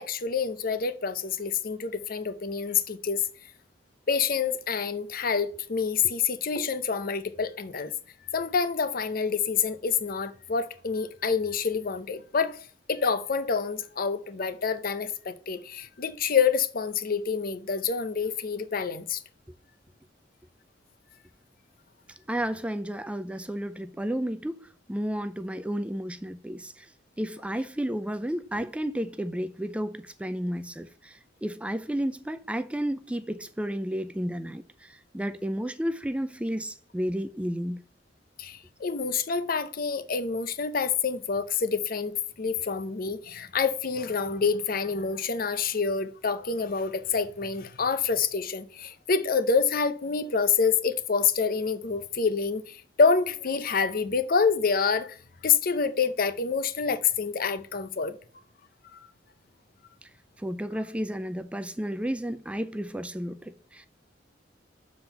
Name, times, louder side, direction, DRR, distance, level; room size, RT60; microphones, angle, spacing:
voice 1, 0.0-3.3 4.1-7.9 8.3-12.6 12.9-19.2 38.4-55.2 55.4-58.2 58.9-59.1, left 5 dB, 55° left, 0.7 m, -27 dB
voice 2, 22.3-26.9 27.2-37.8 60.4-63.9, equal, 5° right, 0.4 m, -32 dB
7.1 x 3.9 x 5.6 m
head